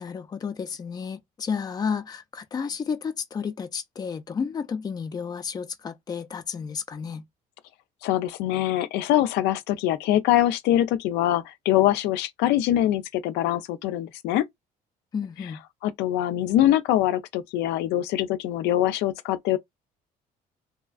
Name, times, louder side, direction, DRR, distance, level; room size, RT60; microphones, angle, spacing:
voice 1, 0.0-7.3 15.1-15.6, left 6 dB, 25° left, 0.4 m, -32 dB
voice 2, 8.0-14.4 15.8-19.6, left 13 dB, 85° left, 0.4 m, -23 dB
2.7 x 2.4 x 2.3 m
cardioid pair, 110°, 17 cm